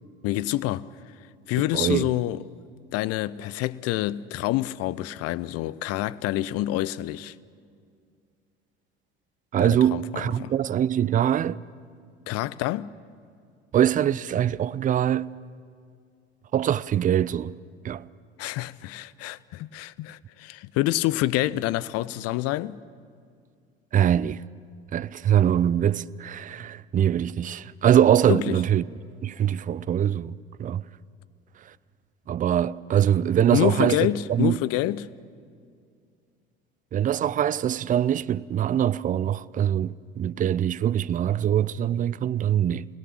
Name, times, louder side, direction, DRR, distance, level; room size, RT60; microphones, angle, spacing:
voice 1, 0.2-1.2 1.5-2.4 2.9-7.3 9.6-10.5 12.3-12.9 18.4-22.8 28.3-28.6 33.5-35.1, left 15 dB, 50° left, 0.7 m, -27 dB
voice 2, 1.7-2.1 9.5-11.6 13.7-15.3 16.5-17.5 17.8-18.1 23.9-24.4 24.9-28.8 29.2-30.8 32.3-34.6 36.9-42.9, right 10 dB, 25° right, 0.5 m, -23 dB
28.0 x 17.5 x 8.6 m
figure-of-eight pair, 60°, 31 cm